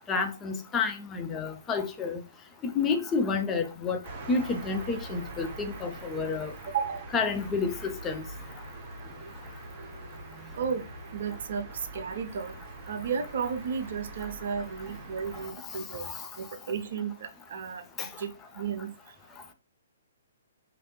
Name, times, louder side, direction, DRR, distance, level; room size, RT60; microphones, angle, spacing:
voice 1, 0.1-2.2 2.6-4.0 4.3-6.5 7.1-8.2 15.3-16.3 18.0-18.1, left 4 dB, 15° left, 0.4 m, -30 dB
sound 1, 4.0-15.5, right 2 dB, 35° right, 0.8 m, -43 dB
voice 2, 6.7-7.1 10.5-10.9 11.1-12.6 12.9-16.0 16.4-18.9, right 6 dB, 50° right, 0.5 m, -33 dB
3.2 x 2.6 x 2.9 m
figure-of-eight pair, 125°, 0 cm